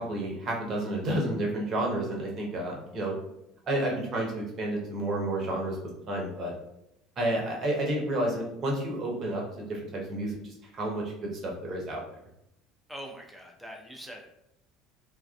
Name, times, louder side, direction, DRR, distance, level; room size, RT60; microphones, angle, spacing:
voice 1, 0.0-3.1 3.7-5.8 6.1-6.5 7.2-12.0, right 1 dB, 40° right, 0 dB, 0.8 m, -30 dB
voice 2, 12.9-14.3, equal, ahead, 1 dB, 0.5 m, -43 dB
3.1 x 2.4 x 2.2 m, 0.81 s
figure-of-eight pair, 65°, 0 cm